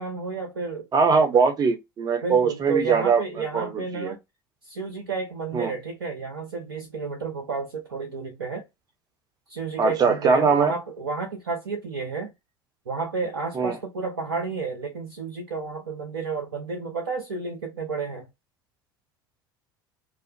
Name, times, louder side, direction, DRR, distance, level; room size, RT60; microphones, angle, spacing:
voice 1, 0.0-1.4 2.2-4.2 4.6-8.6 9.5-12.3 12.9-18.3, right 4 dB, 80° right, 0.5 m, -31 dB
voice 2, 0.9-4.2 5.5-5.7 9.8-10.7 13.5-13.8, right 5 dB, 35° right, 0.7 m, -21 dB
2.4 x 2.0 x 2.6 m
figure-of-eight pair, 65°, 12 cm